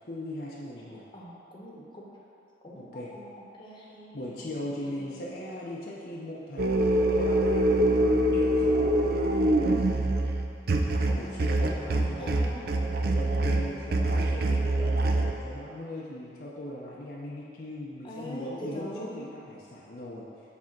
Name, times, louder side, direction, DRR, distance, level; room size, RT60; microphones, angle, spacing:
voice 1, 0.1-1.0 2.7-3.1 4.1-8.9 11.2-12.4 13.1-20.3, left 1 dB, 55° left, -5 dB, 0.7 m, -39 dB
voice 2, 0.8-2.1 2.6-3.3 3.6-4.6 4.8-5.2 11.1-12.7 18.0-19.2, equal, 25° left, -5 dB, 1.0 m, -43 dB
sound 1, 6.6-15.3, right 1 dB, 55° right, 0.5 m, -25 dB
7.4 x 3.5 x 5.9 m, 2.6 s
head